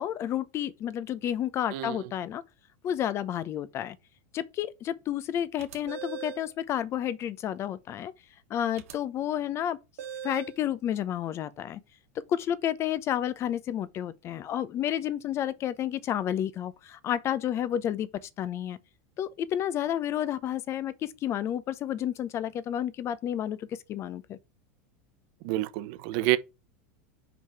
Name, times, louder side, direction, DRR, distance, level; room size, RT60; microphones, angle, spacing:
voice 1, 0.0-2.4 2.8-4.0 4.3-8.1 8.5-9.8 10.2-11.8 12.1-18.8 19.2-24.4, left 10 dB, 35° left, 0.8 m, -31 dB
sound 1, 5.6-6.5 8.8-8.9 10.0-10.6, right 8 dB, 80° right, 1.6 m, -39 dB
voice 2, 25.4-26.4, right 17 dB, 60° right, 0.9 m, -28 dB
5.2 x 4.9 x 5.6 m
supercardioid pair, 130°, 8 cm